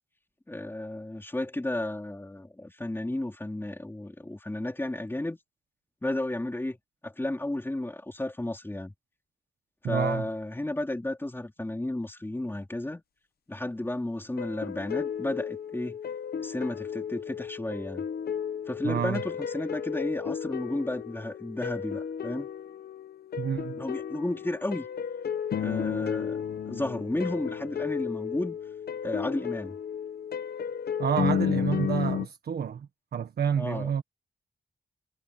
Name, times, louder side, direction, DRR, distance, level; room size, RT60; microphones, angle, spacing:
voice 1, 0.5-5.4 6.0-6.8 7.0-8.9 9.8-13.0 13.5-16.0 16.4-18.0 18.7-22.5 23.8-24.9 25.6-28.6 29.0-29.8 33.6-33.9, left 1 dB, 15° left, 4.0 m, -33 dB
voice 2, 9.8-10.3 18.8-19.2 23.4-23.8 31.0-34.0, right 8 dB, 85° right, 1.6 m, -29 dB
sound 1, 14.4-32.3, left 7 dB, 80° left, 1.1 m, -33 dB
wide cardioid pair, 110°, 16 cm